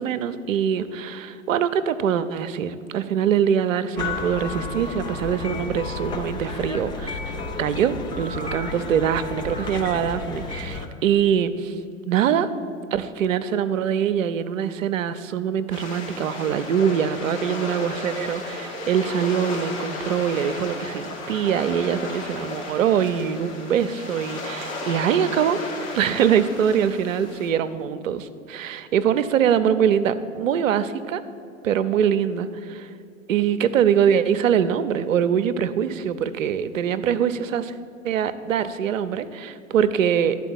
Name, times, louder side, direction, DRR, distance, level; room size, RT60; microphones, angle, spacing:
voice 1, 0.0-11.7 12.1-12.5 12.9-25.6 25.9-31.2 31.6-32.9 33.3-37.7 38.0-40.4, right 8 dB, 70° right, 12 dB, 0.6 m, -23 dB
sound 1, 4.0-10.9, left 3 dB, 10° left, 0.3 m, -32 dB
sound 2, 15.7-27.5, left 2 dB, 80° left, 2.4 m, -34 dB
11.5 x 4.5 x 7.1 m, 2.4 s
figure-of-eight pair, 95°, 41 cm